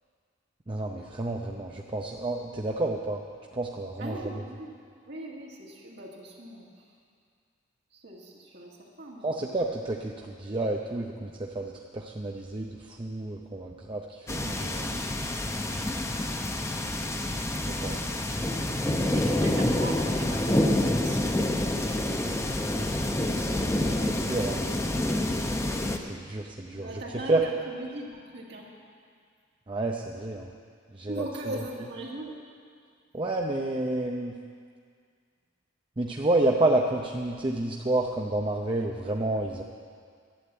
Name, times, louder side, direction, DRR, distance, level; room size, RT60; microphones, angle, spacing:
voice 1, 0.7-3.2 3.5-4.2 9.2-15.0 17.6-18.0 23.3-23.6 24.0-24.6 26.0-26.9 27.3-27.4 29.7-30.5 30.9-31.3 33.1-34.3 36.0-39.6, right 2 dB, 25° right, 0 dB, 0.6 m, -30 dB
voice 2, 4.0-4.7 5.1-6.7 7.9-9.4 19.1-21.4 26.7-28.7 31.1-32.4, right 1 dB, 60° right, -3 dB, 1.9 m, -39 dB
sound 1, 14.3-26.0, left 1 dB, 15° left, 0.7 m, -27 dB
11.5 x 9.3 x 8.0 m, 2.1 s
head